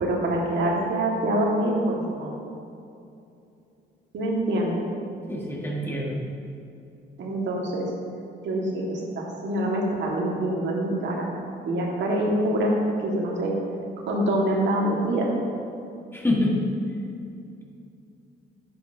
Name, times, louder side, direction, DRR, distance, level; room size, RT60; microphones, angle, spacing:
voice 1, 0.0-2.3 4.1-4.9 7.2-7.9 8.4-11.3 11.6-12.7 13.0-13.5 14.1-15.3, right 1 dB, 65° right, -2 dB, 1.6 m, -25 dB
voice 2, 5.3-6.2 16.1-16.5, left 1 dB, 10° left, -2 dB, 1.5 m, -26 dB
10.5 x 7.9 x 2.7 m, 2.6 s
cardioid pair, 90°, 20 cm